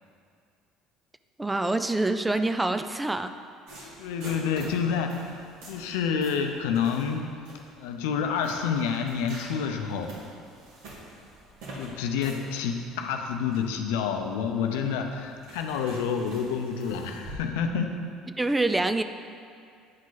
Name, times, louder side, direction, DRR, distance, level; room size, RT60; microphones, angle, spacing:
voice 1, 1.4-3.3 18.4-19.0, right 2 dB, 10° right, 9 dB, 0.3 m, -26 dB
sound 1, 3.7-17.3, right 1 dB, 80° right, 2.0 m, -47 dB
voice 2, 4.0-7.4 7.8-10.1 11.7-18.0, left 6 dB, 90° left, 4 dB, 0.6 m, -28 dB
9.5 x 5.1 x 4.0 m, 2.3 s
supercardioid pair, 100°, 0 cm